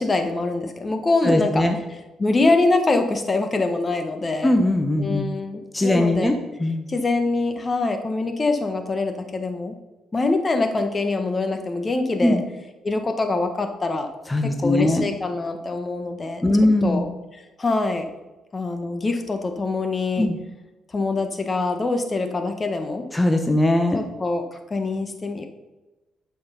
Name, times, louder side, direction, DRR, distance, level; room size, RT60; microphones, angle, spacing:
voice 1, 0.0-1.6 2.2-4.6 5.0-6.3 6.9-9.8 10.1-12.4 12.8-14.1 14.4-16.4 16.8-17.1 17.6-18.0 18.5-20.3 20.9-23.0 23.9-24.4 24.7-25.5, left 3 dB, 30° left, 7 dB, 1.3 m, -24 dB
voice 2, 1.2-1.8 4.4-5.3 5.7-6.9 12.2-12.4 14.3-15.0 16.4-17.1 20.2-20.4 23.1-24.0, left 1 dB, 15° left, 5 dB, 1.1 m, -20 dB
11.0 x 6.4 x 5.5 m, 1.1 s
cardioid pair, 90°, 0 cm